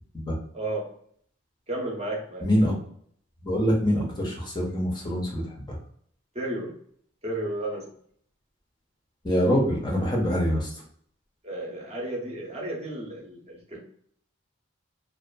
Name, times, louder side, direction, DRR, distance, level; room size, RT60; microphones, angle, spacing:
voice 1, 0.5-0.9 1.7-2.5 6.3-6.8 7.2-7.9 11.4-13.8, right 1 dB, 30° right, -2 dB, 0.6 m, -33 dB
voice 2, 2.4-2.7 3.4-5.8 9.2-10.8, equal, 20° left, -2 dB, 0.5 m, -25 dB
2.5 x 2.3 x 2.2 m, 0.62 s
head